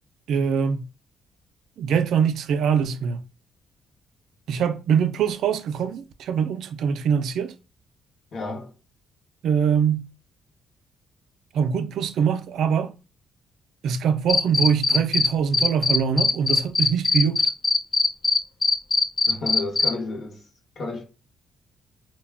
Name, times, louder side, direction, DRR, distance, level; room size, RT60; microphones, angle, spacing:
voice 1, 0.3-0.9 1.8-3.2 4.5-7.5 9.4-10.0 11.5-12.9 13.8-17.5, right 7 dB, 75° right, 0.3 m, -23 dB
voice 2, 8.3-8.7 19.3-20.4 20.8-21.0, left 3 dB, 55° left, 0.9 m, -31 dB
Cricket, 14.3-15.3 15.5-19.9, left 4 dB, 35° left, 0.3 m, -19 dB
2.2 x 2.1 x 3.4 m
cardioid pair, 90°, 0 cm